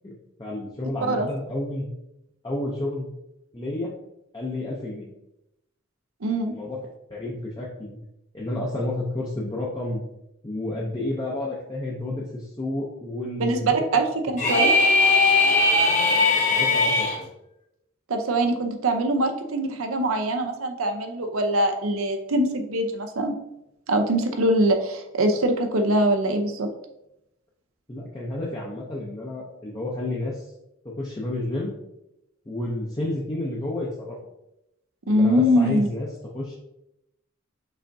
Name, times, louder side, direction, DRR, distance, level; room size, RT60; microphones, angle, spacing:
voice 1, 0.4-1.9 2.4-3.1 3.5-3.9 4.3-5.1 6.5-6.8 7.1-8.0 8.3-10.0 10.4-13.7 14.6-14.7 16.5-17.3 27.9-30.4 30.8-31.8 32.5-34.2 35.1-36.1 36.3-36.6, left 1 dB, 20° left, -4 dB, 0.6 m, -30 dB
voice 2, 6.2-6.5 13.4-14.1 14.3-14.8 18.1-23.3 23.9-26.7 35.1-35.9, right 1 dB, 85° right, 5 dB, 0.7 m, -23 dB
sound 1, 14.4-17.2, left 3 dB, 35° left, 0.9 m, -19 dB
5.5 x 3.5 x 2.6 m, 0.86 s
head